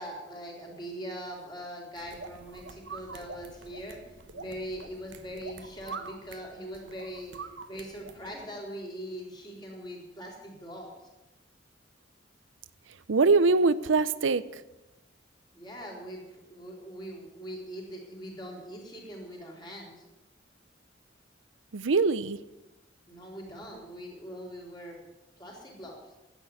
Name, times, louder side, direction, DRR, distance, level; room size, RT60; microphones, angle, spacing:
voice 1, 0.0-10.9 15.5-19.9 23.1-25.0 25.4-26.0, equal, 25° left, -1 dB, 4.1 m, -42 dB
sound 1, 2.0-8.4, right 4 dB, 70° right, 1.0 m, -45 dB
voice 2, 12.9-14.6 21.7-22.4, right 4 dB, 85° right, 17 dB, 0.6 m, -23 dB
10.5 x 9.0 x 9.3 m, 0.99 s
head